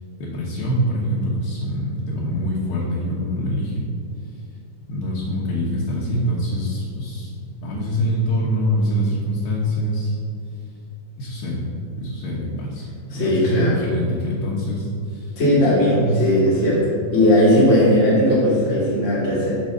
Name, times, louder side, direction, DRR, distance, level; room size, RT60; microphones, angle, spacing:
voice 1, 0.2-3.9 4.2-4.3 4.9-7.3 7.6-10.2 10.5-10.7 11.2-11.7 11.9-12.9 13.1-15.4 15.9-16.4 16.8-16.9, equal, 70° left, -6 dB, 2.5 m, -24 dB
voice 2, 13.1-13.7 15.4-16.8 17.1-19.6, left 1 dB, 40° left, -7 dB, 1.1 m, -17 dB
7.4 x 4.8 x 6.6 m, 2.3 s
omnidirectional pair, 5.3 m